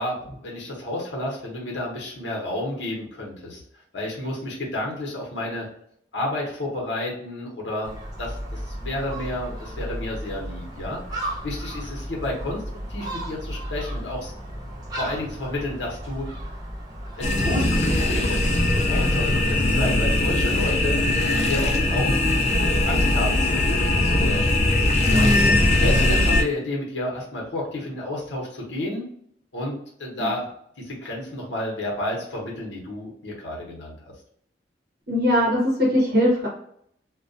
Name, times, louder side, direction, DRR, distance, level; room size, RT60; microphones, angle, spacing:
voice 1, 0.0-3.6 3.9-5.7 6.1-11.0 11.4-12.6 12.9-14.3 14.9-16.3 17.2-18.4 18.7-21.0 21.4-22.1 22.8-24.6 25.0-25.3 25.7-29.0 29.5-30.5 30.8-34.0, left 1 dB, 80° left, -3 dB, 0.8 m, -31 dB
Gull seagull, 7.8-19.3, equal, 20° right, 0.5 m, -35 dB
sound 1, 17.2-26.4, left 2 dB, 35° left, 0.3 m, -20 dB
voice 2, 25.0-25.6 30.2-30.3 35.1-36.5, left 1 dB, 55° right, -3 dB, 0.7 m, -21 dB
2.3 x 2.1 x 2.5 m, 0.67 s
head